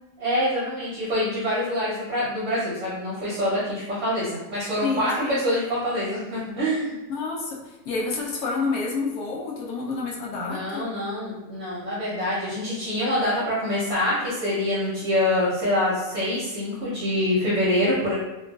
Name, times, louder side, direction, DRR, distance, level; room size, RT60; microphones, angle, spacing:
voice 1, 0.2-7.0 10.5-18.1, left 1 dB, 55° right, -8 dB, 1.0 m, -25 dB
voice 2, 4.8-5.4 7.1-10.8, left 4 dB, 70° left, -2 dB, 1.0 m, -29 dB
2.9 x 2.4 x 2.3 m, 1.0 s
omnidirectional pair, 1.8 m